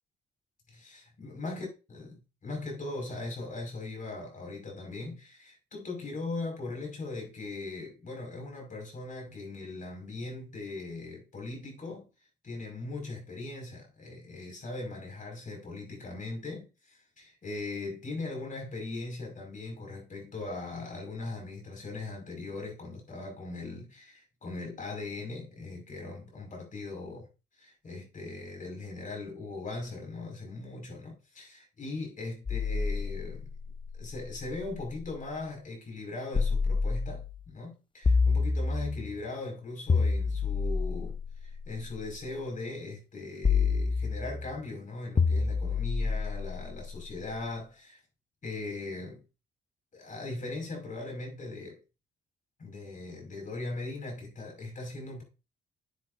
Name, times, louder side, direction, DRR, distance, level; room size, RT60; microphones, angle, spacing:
voice 1, 0.7-12.1 12.4-27.3 27.6-33.5 34.0-48.0 48.4-49.2 49.9-51.8 52.6-55.2, left 3 dB, 40° left, 5.7 m, -39 dB
sound 1, 32.5-35.2 36.3-37.4 38.0-39.2 39.9-42.1 43.4-44.5 45.2-47.3, left 4 dB, 25° left, 0.8 m, -29 dB
9.6 x 9.5 x 2.7 m
cardioid pair, 90°, 20 cm